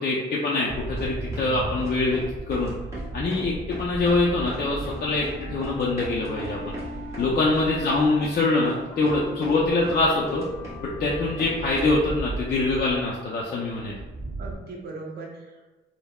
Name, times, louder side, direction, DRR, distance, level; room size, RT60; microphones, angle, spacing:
voice 1, 0.0-2.2 2.5-2.7 3.1-6.8 7.2-10.4 10.8-14.0, left 3 dB, 50° left, -4 dB, 0.5 m, -24 dB
sound 1, 0.5-0.7 1.0-1.5 1.8-2.3 2.5-3.5 3.7-4.2 4.5-5.3 5.6-8.3 8.6-8.8 9.0-10.0 10.3-11.1 11.4-12.0, equal, 15° right, 1.4 m, -39 dB
sound 2, 0.7-14.6, right 2 dB, 35° right, 1.0 m, -37 dB
Wind instrument woodwind instrument, 4.9-11.9, equal, 85° left, 0.7 m, -41 dB
voice 2, 7.2-7.6 14.4-15.7, right 3 dB, 55° right, 0 dB, 0.6 m, -38 dB
3.3 x 2.0 x 2.2 m, 1.1 s
cardioid pair, 90°, 20 cm